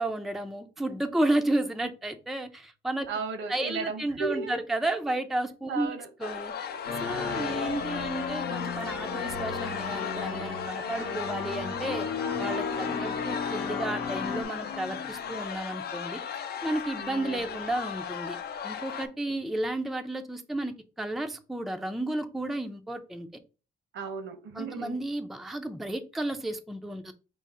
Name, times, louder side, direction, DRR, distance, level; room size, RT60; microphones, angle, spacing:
voice 1, 0.0-3.1 3.5-5.9 6.2-6.5 7.0-12.1 12.4-16.2 16.6-18.4 18.6-23.4 24.5-27.1, right 1 dB, ahead, 0.4 m, -32 dB
voice 2, 3.1-4.6 5.7-6.1 7.2-7.7 12.8-13.4 17.0-17.5 19.3-19.4 23.9-25.0, right 5 dB, 75° right, 1.0 m, -36 dB
sound 1, 6.2-19.1, left 7 dB, 55° left, 0.5 m, -35 dB
sound 2, 6.8-14.4, left 4 dB, 90° left, 1.0 m, -35 dB
5.2 x 2.0 x 3.6 m
cardioid pair, 90°, 20 cm